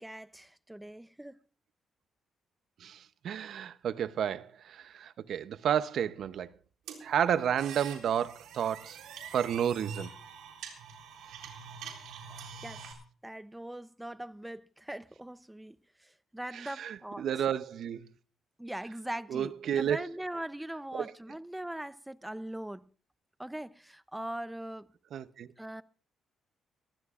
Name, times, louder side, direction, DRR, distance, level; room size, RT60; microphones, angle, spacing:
voice 1, 0.0-1.4 12.6-12.8 13.2-17.3 18.6-22.9 23.4-24.9 25.6-25.8, right 1 dB, 5° right, 0.6 m, -41 dB
voice 2, 3.2-6.5 7.0-9.0 9.3-10.1 16.5-18.0 19.3-20.0 20.9-21.0 25.1-25.5, right 9 dB, 65° right, 0.7 m, -31 dB
sound 1, 6.9-12.9, right 6 dB, 90° right, 3.6 m, -44 dB
21.0 x 15.5 x 2.5 m
cardioid pair, 90°, 0 cm